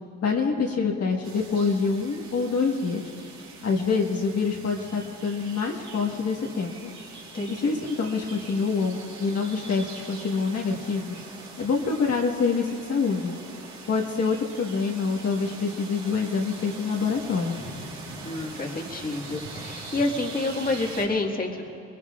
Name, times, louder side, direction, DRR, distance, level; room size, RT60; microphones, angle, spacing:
voice 1, 0.2-3.1 3.6-6.9 7.5-11.2 11.6-13.3 13.9-17.6, left 4 dB, 55° left, -1 dB, 1.5 m, -26 dB
sound 1, 1.2-21.1, right 3 dB, 65° right, 5.0 m, -42 dB
voice 2, 7.3-7.8 18.2-21.6, left 2 dB, 30° left, 1 dB, 1.8 m, -28 dB
22.0 x 21.5 x 2.5 m, 2.3 s
cardioid pair, 90°, 30 cm